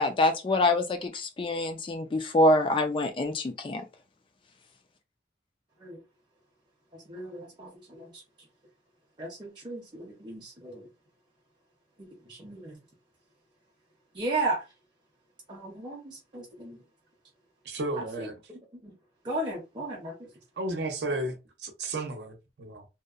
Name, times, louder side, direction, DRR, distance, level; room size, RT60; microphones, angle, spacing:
voice 1, 0.0-3.8, left 1 dB, 30° left, 0.3 m, -25 dB
voice 2, 6.9-8.2 9.2-10.9 12.0-12.8 14.1-14.6 15.5-16.8 18.2-18.3 18.8-18.9 19.2-20.3, right 2 dB, 25° right, 0.6 m, -35 dB
voice 3, 17.6-18.4 20.6-22.9, right 2 dB, 70° right, 0.6 m, -33 dB
2.7 x 2.0 x 2.4 m
head